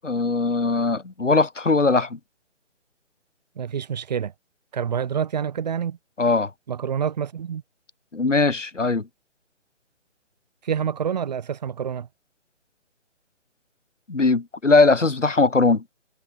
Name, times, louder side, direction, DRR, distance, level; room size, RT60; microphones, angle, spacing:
voice 1, 0.0-2.2 6.2-6.5 8.1-9.1 14.1-15.8, left 3 dB, 80° left, 1.8 m, -20 dB
voice 2, 3.5-4.3 4.7-6.0 6.7-7.6 10.6-12.1, right 8 dB, 35° right, 1.5 m, -27 dB
figure-of-eight pair, 145°, 36 cm